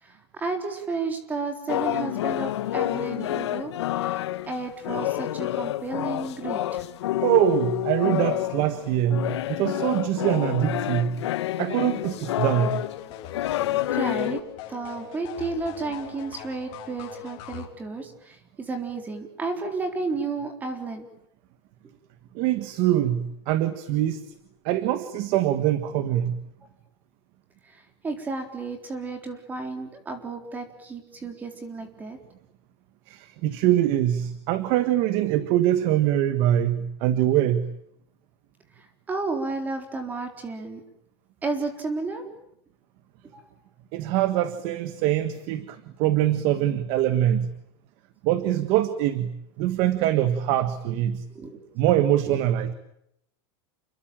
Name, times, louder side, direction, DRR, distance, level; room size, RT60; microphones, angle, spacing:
voice 1, 0.0-3.7 4.0-6.8 13.5-13.6 13.9-14.4 14.7-21.1 27.6-32.2 39.1-40.8 41.4-42.2 43.3-43.4 51.3-51.6, right 3 dB, 10° right, 6 dB, 3.9 m, -32 dB
sound 1, 1.7-14.4, left 13 dB, 85° left, 1.4 m, -28 dB
voice 2, 7.2-11.2 11.6-12.8 22.3-24.2 24.6-26.4 33.1-37.7 43.9-47.5 48.2-51.2 51.8-52.7, right 12 dB, 40° right, 12 dB, 1.5 m, -23 dB
sound 2, 11.9-17.7, left 10 dB, 35° left, 3.7 m, -42 dB
29.5 x 21.5 x 8.9 m, 0.78 s
supercardioid pair, 170°, 14 cm